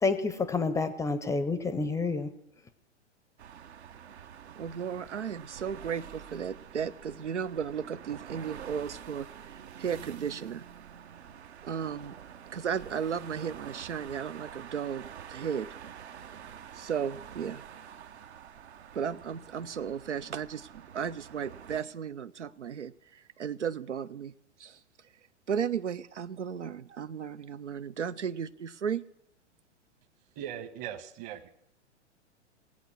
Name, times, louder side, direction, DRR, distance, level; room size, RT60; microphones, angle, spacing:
voice 1, 0.0-2.4, left 4 dB, 10° left, 12 dB, 0.6 m, -29 dB
sound 1, 3.4-21.8, right 8 dB, 65° right, 1.0 m, -47 dB
voice 2, 4.6-10.6 11.6-12.2 12.5-15.7 16.7-17.6 18.9-24.3 24.6-24.8 25.5-29.1, right 7 dB, 85° right, 14 dB, 0.6 m, -35 dB
voice 3, 30.3-31.5, right 10 dB, 40° right, 12 dB, 1.3 m, -39 dB
19.5 x 8.3 x 6.2 m, 0.74 s
figure-of-eight pair, 105°, 35 cm